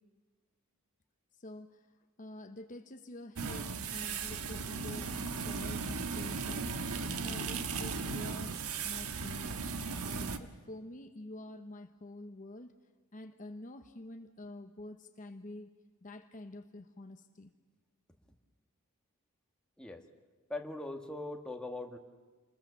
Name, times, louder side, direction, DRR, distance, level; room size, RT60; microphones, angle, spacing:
voice 1, 1.4-1.9 2.2-9.6 10.0-12.7 13.1-15.7 16.0-17.5, left 1 dB, 35° left, 7 dB, 1.0 m, -48 dB
sound 1, 3.4-10.4, right 4 dB, 80° right, 1.4 m, -37 dB
voice 2, 20.5-22.0, left 2 dB, 5° left, 3 dB, 1.7 m, -40 dB
28.5 x 21.0 x 7.0 m, 1.4 s
head